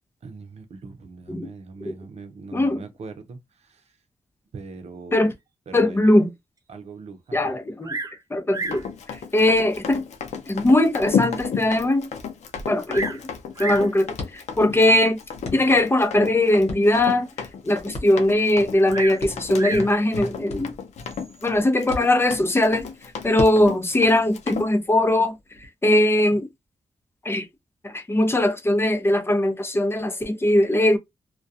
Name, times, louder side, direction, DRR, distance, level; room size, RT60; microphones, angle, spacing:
voice 1, 0.2-3.4 4.5-5.3 5.7-6.0 6.7-7.4, right 4 dB, 70° right, 0.6 m, -40 dB
voice 2, 2.5-2.8 5.1-5.3 5.7-6.3 7.3-8.0 8.3-8.8 9.3-10.0 10.5-12.1 12.7-13.2 13.6-15.2 15.5-17.3 17.6-20.7 21.4-22.9 23.2-25.3 25.8-26.5 27.2-27.5 27.8-31.0, left 1 dB, 20° left, 0.7 m, -20 dB
Bird vocalization bird call bird song, 7.8-8.2 8.5-8.9 9.7-9.8 10.5-10.6 11.1-11.2 11.4-11.5 12.5-13.2 13.6-13.9 14.9-15.3 18.9-19.9 21.0-21.4, right 3 dB, 30° right, 0.5 m, -32 dB
Run, 8.6-24.7, left 6 dB, 90° left, 0.5 m, -32 dB
sound 1, 12.4-25.7, left 2 dB, 65° left, 0.9 m, -40 dB
2.3 x 2.2 x 2.7 m
cardioid pair, 70°, 11 cm